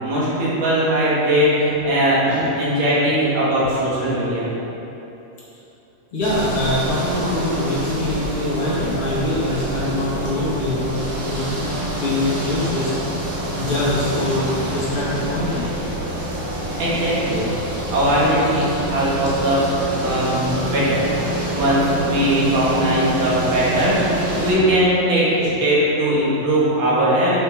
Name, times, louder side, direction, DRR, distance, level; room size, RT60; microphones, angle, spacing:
voice 1, 0.0-4.5 16.8-17.5 17.9-21.1 21.5-24.0 24.3-27.4, right 1 dB, 80° right, -8 dB, 3.6 m, -19 dB
voice 2, 6.1-11.4 12.0-12.9 13.5-15.7, left 1 dB, 50° left, -9 dB, 2.6 m, -23 dB
sound 1, 6.2-24.5, right 1 dB, 30° right, 1.9 m, -26 dB
9.0 x 8.1 x 3.7 m, 3.0 s
omnidirectional pair, 3.6 m